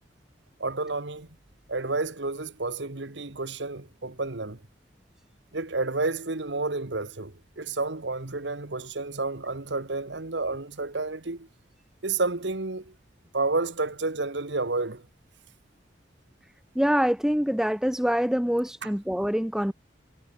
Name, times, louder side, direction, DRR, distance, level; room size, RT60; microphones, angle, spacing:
voice 1, 0.6-1.3 1.7-4.6 5.5-11.5 12.0-12.9 13.3-15.1 18.8-18.9, right 3 dB, 70° right, 1.5 m, -30 dB
voice 2, 16.8-19.7, equal, 5° right, 0.6 m, -25 dB
head